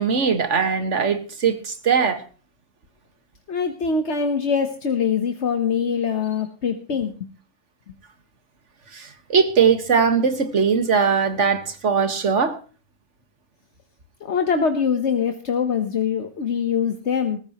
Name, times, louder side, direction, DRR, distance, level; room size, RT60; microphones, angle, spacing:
voice 1, 0.0-2.2 8.9-12.6, right 6 dB, 85° right, 2.0 m, -20 dB
voice 2, 3.5-7.3 14.2-17.4, left 6 dB, 70° left, 1.5 m, -23 dB
20.5 x 14.0 x 3.0 m
omnidirectional pair, 1.2 m